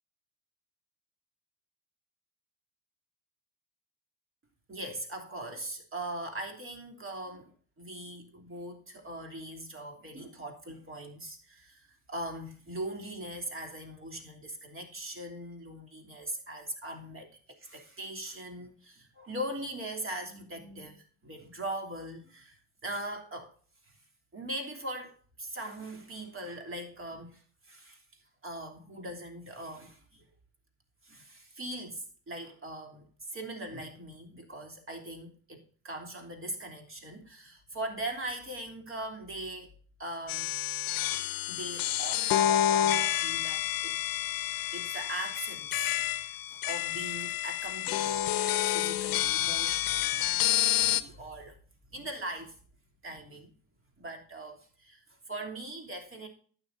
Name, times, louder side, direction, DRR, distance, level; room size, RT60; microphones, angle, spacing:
voice 1, 4.7-7.5 7.8-17.3 17.6-23.5 24.3-28.0 28.4-30.2 31.0-39.7 40.0-40.5 41.5-44.0 44.7-48.2 48.7-51.5 51.9-52.5 53.0-53.5 54.0-55.0 55.3-56.3, right 1 dB, 30° right, 3.2 m, -40 dB
sound 1, 40.3-51.0, left 12 dB, 55° left, 0.8 m, -29 dB
12.0 x 9.1 x 2.6 m
hypercardioid pair, 65°, 42 cm